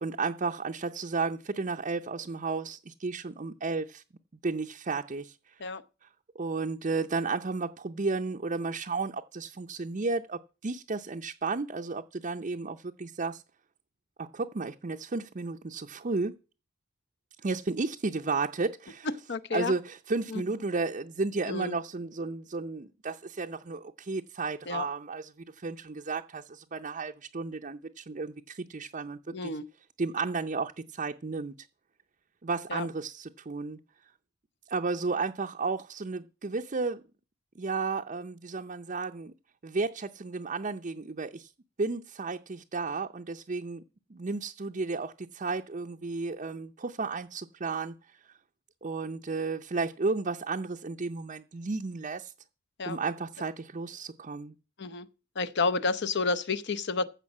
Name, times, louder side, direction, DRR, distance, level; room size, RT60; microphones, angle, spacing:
voice 1, 0.0-4.0 4.4-5.4 6.4-13.4 14.2-16.4 17.4-19.1 19.5-29.5 30.0-31.5 32.4-33.8 34.7-37.0 37.6-39.3 39.6-41.5 41.8-43.8 44.1-47.9 48.8-52.3 52.9-54.5, right 4 dB, 35° right, 0.6 m, -33 dB
voice 2, 19.1-19.7 20.3-20.4 21.5-21.8 24.7-24.9 29.3-29.6 32.7-32.9 52.8-53.0 54.8-55.1 55.4-57.0, left 4 dB, 55° left, 0.8 m, -30 dB
15.0 x 5.1 x 7.3 m
head